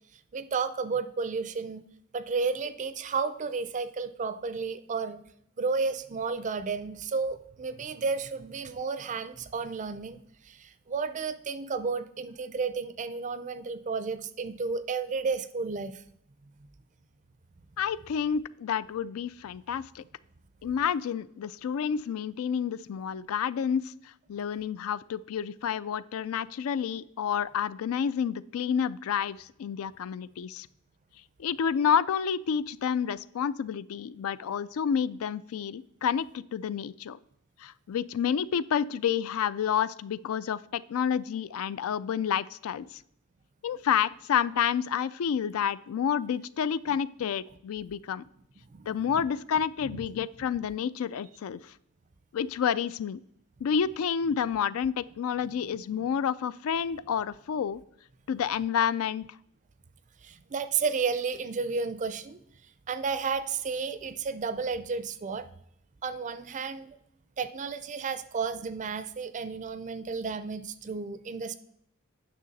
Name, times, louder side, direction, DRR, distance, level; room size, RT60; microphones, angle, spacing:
voice 1, 0.3-1.9 2.1-5.2 5.6-16.0 48.6-48.9 49.2-49.3 49.9-50.1 60.2-62.4 62.9-65.5 66.0-67.0 67.4-71.6, right 5 dB, 35° right, 12 dB, 0.4 m, -32 dB
voice 2, 17.8-20.0 20.6-30.7 31.4-37.2 37.6-43.0 43.6-48.2 48.9-51.7 52.3-53.2 53.6-57.8 58.3-59.2, left 8 dB, 70° left, 18 dB, 0.3 m, -29 dB
9.2 x 6.4 x 4.0 m, 0.71 s
head